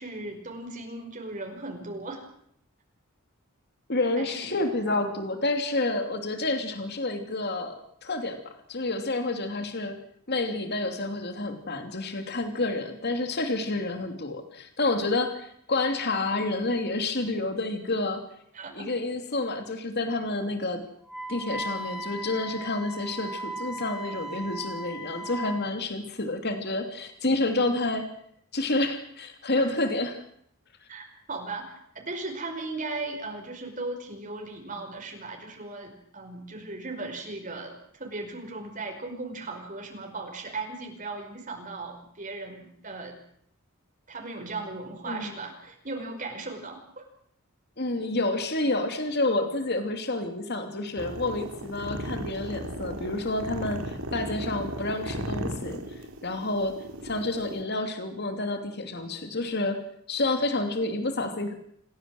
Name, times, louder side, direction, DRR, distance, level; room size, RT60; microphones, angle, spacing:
voice 1, 0.0-2.3 4.2-4.6 4.9-5.1 18.5-18.9 29.6-29.7 30.9-43.1 44.1-47.0, right 3 dB, 35° right, 2 dB, 5.3 m, -37 dB
voice 2, 3.9-7.7 8.0-10.0 10.3-18.2 18.7-20.8 21.3-28.1 28.5-30.2 45.1-45.4 47.8-55.8 56.2-56.8 57.0-59.8 60.1-61.5, left 2 dB, 50° left, 6 dB, 2.9 m, -29 dB
Wind instrument woodwind instrument, 21.1-25.7, right 1 dB, ahead, 3.0 m, -37 dB
sound 1, 51.0-57.6, right 1 dB, 85° right, 3.9 m, -35 dB
28.5 x 17.5 x 7.9 m, 0.68 s
head